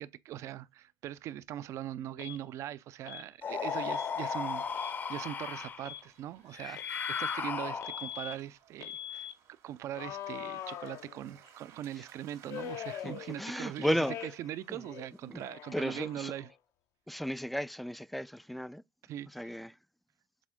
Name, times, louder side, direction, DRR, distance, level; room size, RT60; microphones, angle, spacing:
voice 1, 0.0-9.3 9.6-16.5 19.1-19.5, right 12 dB, 65° right, 0.5 m, -41 dB
Alarm, 2.2-2.4 3.1-3.3 3.9-4.1 4.6-5.0 5.8-6.1 6.8-7.4 7.8-8.4 8.8-9.3 9.9-11.5 12.5-13.7 14.0-14.6 14.8-16.5, left 10 dB, 70° left, 0.8 m, -42 dB
sound 1, 3.4-5.9 6.5-8.2, left 6 dB, 35° left, 0.7 m, -36 dB
sound 2, 3.7-16.3, right 9 dB, 85° right, 2.2 m, -61 dB
voice 2, 13.0-14.1 14.7-14.8 15.3-15.4 15.7-16.3 17.1-18.8 19.3-19.7, equal, ahead, 0.3 m, -34 dB
7.4 x 3.6 x 3.6 m
cardioid pair, 120°, 5 cm